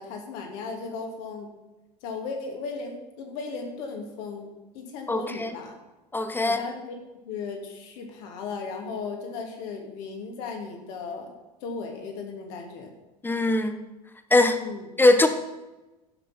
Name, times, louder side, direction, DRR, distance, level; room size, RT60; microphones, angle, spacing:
voice 1, 0.0-1.5 2.0-4.5 4.7-5.8 6.4-11.3 11.6-12.9 14.6-14.9, left 4 dB, 50° left, 3 dB, 2.5 m, -36 dB
voice 2, 5.1-5.5 6.1-6.6 13.2-13.8 14.3-14.6 15.0-15.3, left 2 dB, 10° left, 8 dB, 1.1 m, -21 dB
15.5 x 6.1 x 5.8 m, 1.1 s
figure-of-eight pair, 75°, 20 cm